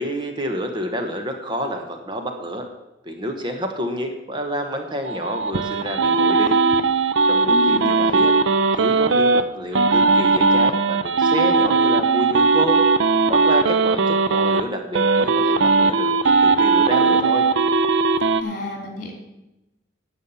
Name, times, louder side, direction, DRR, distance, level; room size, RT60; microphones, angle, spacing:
voice 1, 0.0-2.6 3.0-6.6 7.3-8.3 8.7-17.5, equal, 25° right, 4 dB, 1.1 m, -28 dB
sound 1, 5.1-9.4 9.8-14.6 14.9-18.4, right 4 dB, 85° right, 0.6 m, -18 dB
voice 2, 7.5-8.2 18.4-19.1, left 1 dB, 50° left, 2 dB, 3.1 m, -30 dB
11.0 x 7.3 x 7.1 m, 0.96 s
head